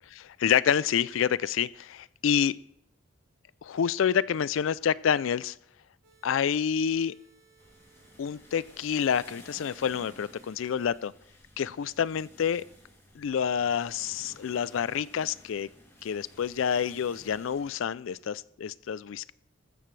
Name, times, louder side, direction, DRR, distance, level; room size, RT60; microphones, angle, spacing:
voice 1, 0.2-2.6 3.6-5.6 6.2-7.1 8.2-11.1 11.6-12.6 13.2-15.7 16.0-19.3, left 8 dB, 70° left, 20 dB, 0.4 m, -28 dB
sound 1, 6.0-11.0, right 5 dB, 80° right, 4.7 m, -62 dB
sound 2, 7.6-17.7, left 1 dB, 15° left, 2.7 m, -55 dB
15.0 x 13.5 x 3.3 m, 0.76 s
head